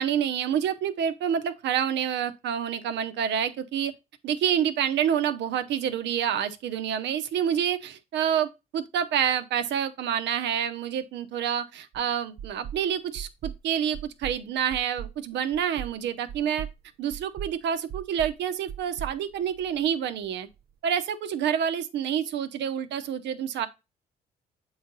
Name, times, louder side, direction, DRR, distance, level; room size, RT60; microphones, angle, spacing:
voice 1, 0.0-3.9 4.2-16.7 17.0-20.5 20.8-23.7, right 9 dB, 75° right, 0.8 m, -28 dB
sound 1, 11.9-12.0 12.4-12.8 13.2-13.6 13.9-14.4 14.7-15.1 15.5-15.9 16.3-16.8 17.1-17.5 17.9-18.4 18.7-19.9, right 9 dB, 55° right, 0.5 m, -38 dB
7.7 x 4.0 x 3.9 m
supercardioid pair, 65°, 18 cm